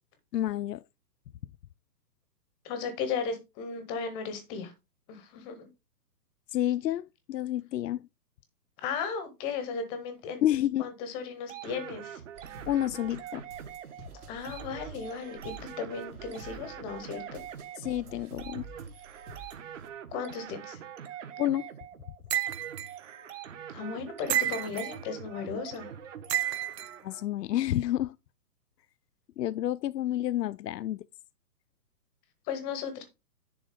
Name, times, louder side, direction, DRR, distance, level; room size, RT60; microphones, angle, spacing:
voice 1, 0.3-0.8 6.5-8.1 10.4-10.9 12.7-13.4 17.8-18.6 21.4-21.7 27.0-28.2 29.4-31.1, left 13 dB, 80° left, 0.6 m, -29 dB
voice 2, 2.6-4.7 5.1-5.7 8.8-12.2 14.3-17.4 20.1-20.8 23.7-25.9 32.5-33.0, left 6 dB, 10° left, 0.7 m, -36 dB
sound 1, 11.5-27.2, right 9 dB, 50° right, 1.4 m, -44 dB
sound 2, 12.3-19.9, right 4 dB, 70° right, 2.6 m, -49 dB
sound 3, 22.3-22.9 24.3-25.0 26.3-26.9, right 12 dB, 85° right, 0.7 m, -30 dB
10.0 x 3.7 x 4.9 m
hypercardioid pair, 150°, 48 cm